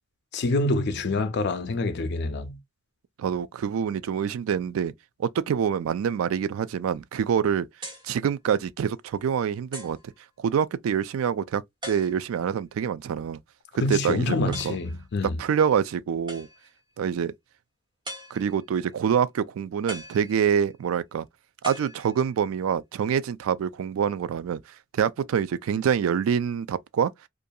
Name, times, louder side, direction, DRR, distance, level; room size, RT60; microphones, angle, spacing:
voice 1, 0.3-2.6 13.8-15.4, left 2 dB, 55° left, 0.5 m, -26 dB
voice 2, 3.2-4.9 5.2-7.7 8.0-10.0 10.4-13.4 13.9-14.8 15.4-16.5 17.0-17.3 18.3-21.3 21.6-24.6 24.9-27.1, right 7 dB, 90° right, 0.3 m, -26 dB
sound 1, 7.8-8.2 8.9-9.0 9.7-10.1 11.8-12.5 14.5-14.9 16.3-16.8 18.0-18.7 19.9-20.7 21.6-22.5, equal, 20° right, 1.1 m, -41 dB
2.5 x 2.3 x 2.6 m
head